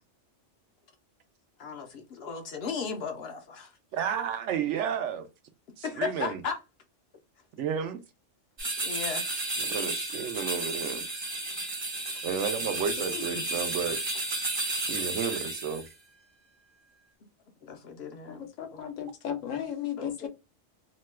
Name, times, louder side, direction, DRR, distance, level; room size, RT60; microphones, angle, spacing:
voice 1, 1.6-3.8 5.8-6.6 8.8-9.2 17.6-18.8 20.0-20.3, left 6 dB, 65° left, 0.8 m, -36 dB
voice 2, 3.9-5.3 5.8-6.4 7.6-8.0 9.6-11.1 12.2-14.0 14.9-15.9, right 7 dB, 75° right, 0.9 m, -32 dB
sound 1, 8.6-15.9, right 2 dB, 30° right, 0.6 m, -32 dB
voice 3, 13.1-13.4 18.3-20.3, left 9 dB, 85° left, 1.1 m, -35 dB
2.8 x 2.2 x 3.1 m
omnidirectional pair, 1.3 m